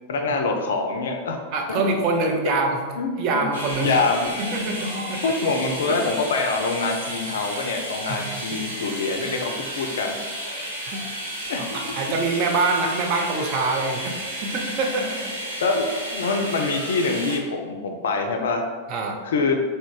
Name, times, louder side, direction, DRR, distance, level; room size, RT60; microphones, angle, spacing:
voice 1, 0.1-1.4 1.7-1.9 3.0-3.4 3.8-4.3 5.2-10.2 11.5-11.8 15.6-18.6 19.2-19.6, left 3 dB, 60° left, 4 dB, 0.4 m, -25 dB
voice 2, 1.5-2.8 3.2-3.9 4.4-5.3 5.9-6.0 8.1-8.2 8.5-8.6 10.8-11.0 11.6-14.1 14.4-15.3 18.9-19.2, right 3 dB, 40° right, 2 dB, 0.5 m, -25 dB
sound 1, 3.5-17.4, equal, 70° right, 0.9 m, -33 dB
3.5 x 2.1 x 3.7 m, 1.5 s
figure-of-eight pair, 90°, 0 cm